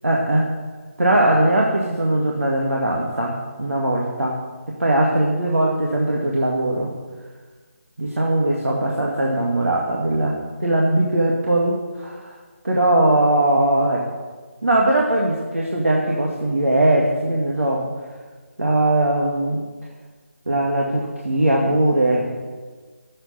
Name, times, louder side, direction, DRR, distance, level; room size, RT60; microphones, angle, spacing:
voice 1, 0.0-0.6 1.0-4.4 4.8-6.9 8.0-12.4 12.6-14.0 14.6-17.9 18.6-19.6 20.5-22.3, right 1 dB, 70° right, -3 dB, 2.1 m, -20 dB
10.0 x 8.0 x 9.0 m, 1.4 s
figure-of-eight pair, 155°, 7 cm